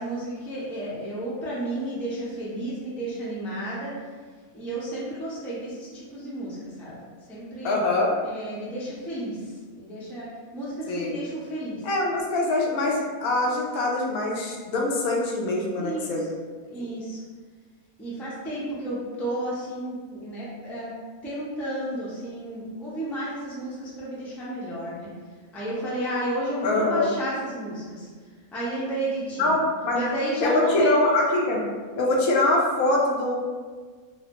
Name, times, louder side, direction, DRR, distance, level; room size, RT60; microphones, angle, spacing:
voice 1, 0.0-3.9 4.5-7.0 7.3-7.8 8.2-10.3 10.5-11.8 15.7-16.3 16.7-17.2 18.0-20.9 21.2-25.1 25.5-28.1 28.5-29.5 29.9-30.9, right 1 dB, ahead, -8 dB, 0.4 m, -32 dB
voice 2, 7.6-8.2 10.9-11.2 11.8-16.2 26.6-27.1 29.4-30.1 30.4-31.6 32.0-33.4, left 2 dB, 75° left, -1 dB, 1.0 m, -23 dB
3.8 x 2.0 x 2.9 m, 1.5 s
omnidirectional pair, 1.5 m